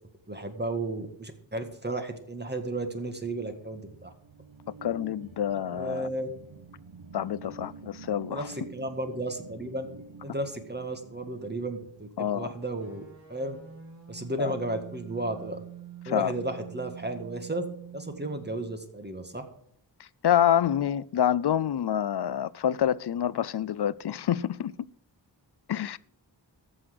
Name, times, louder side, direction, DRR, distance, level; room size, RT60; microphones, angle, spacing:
voice 1, 0.3-4.1 5.7-6.3 8.3-9.9 10.2-13.0 13.3-13.6 14.1-15.6 16.1-17.6 17.9-19.5, right 1 dB, 20° right, 1.8 m, -33 dB
sound 1, 3.5-12.6, right 3 dB, 90° right, 1.2 m, -48 dB
voice 2, 4.8-6.1 7.1-8.5 12.2-12.5 14.4-14.5 16.1-16.3 20.0-24.7 25.7-26.0, left 10 dB, 60° left, 0.5 m, -27 dB
sound 2, 12.8-18.8, right 9 dB, 40° right, 3.8 m, -46 dB
13.5 x 6.4 x 7.7 m
wide cardioid pair, 85°, 44 cm